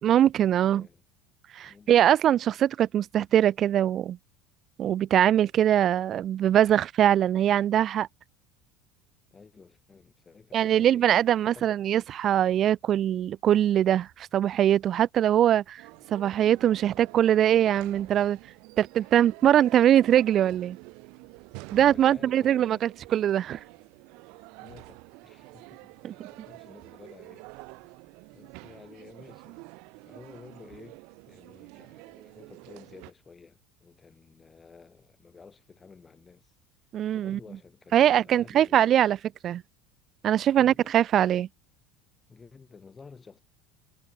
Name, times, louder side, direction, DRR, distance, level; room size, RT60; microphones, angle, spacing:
voice 1, 0.0-0.8 1.5-4.2 4.8-8.1 10.5-15.8 16.1-18.4 18.8-20.8 21.7-23.6 26.0-26.1 36.9-37.4 37.9-39.2 39.4-39.6 40.2-41.5, right 11 dB, 30° right, 0.5 m, -22 dB
voice 2, 0.6-1.0 1.6-1.9 9.3-11.2 11.5-11.7 19.0-19.1 19.4-19.5 21.9-22.9 24.6-27.5 28.3-29.6 30.0-36.5 37.1-39.0 40.6-40.9 42.3-43.4, left 5 dB, 15° left, 3.2 m, -52 dB
sound 1, 15.8-33.1, right 29 dB, 55° right, 1.2 m, -48 dB
cardioid pair, 170°, 0 cm